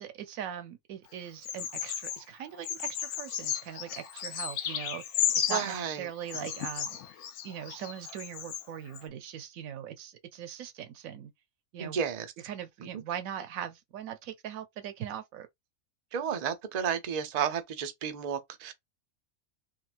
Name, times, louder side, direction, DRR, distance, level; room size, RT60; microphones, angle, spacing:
voice 1, 0.0-7.0 7.4-11.3 11.7-12.0 12.4-15.5, right 9 dB, 75° right, 1.0 m, -41 dB
Bird vocalization bird call bird song, 1.4-2.2 2.6-5.8 6.3-8.6 8.9-9.0, left 9 dB, 85° left, 1.1 m, -34 dB
voice 2, 5.5-6.1 11.8-12.3 16.1-18.7, right 7 dB, 55° right, 0.4 m, -32 dB
3.7 x 2.2 x 2.4 m
omnidirectional pair, 1.5 m